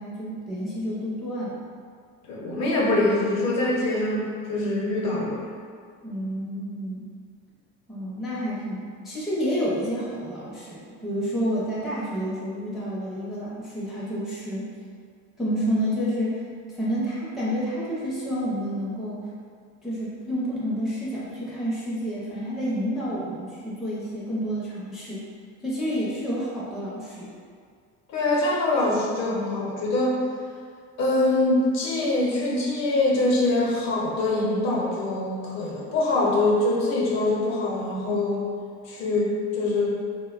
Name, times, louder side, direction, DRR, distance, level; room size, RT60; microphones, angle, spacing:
voice 1, 0.0-1.7 6.0-7.1 7.9-14.7 15.4-16.4 16.7-19.2 19.8-25.2 25.6-27.3, equal, ahead, -8 dB, 0.4 m, -29 dB
voice 2, 2.3-5.5 28.1-30.2 31.0-38.5 38.8-39.9, left 2 dB, 60° left, -4 dB, 0.7 m, -24 dB
3.1 x 2.1 x 2.3 m, 2.1 s
cardioid pair, 135°, 30 cm